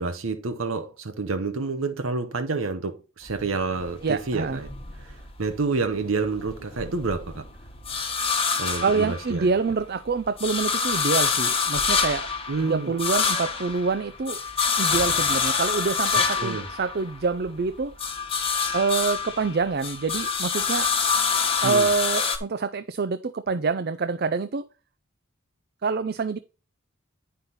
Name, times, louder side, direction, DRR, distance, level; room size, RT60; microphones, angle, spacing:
voice 1, 0.0-4.7 5.0-7.5 8.6-9.5 12.5-12.9 16.4-16.7 21.6-21.9, right 4 dB, 80° right, 0.9 m, -28 dB
sound 1, 3.3-5.6 6.0-9.7 10.1-17.5 17.8-22.4, left 5 dB, 25° left, 1.3 m, -26 dB
voice 2, 4.0-4.6 8.8-12.3 12.6-14.4 14.8-17.9 18.7-20.9 21.6-24.6 25.8-26.4, right 4 dB, 50° right, 0.5 m, -26 dB
9.5 x 5.7 x 4.1 m
head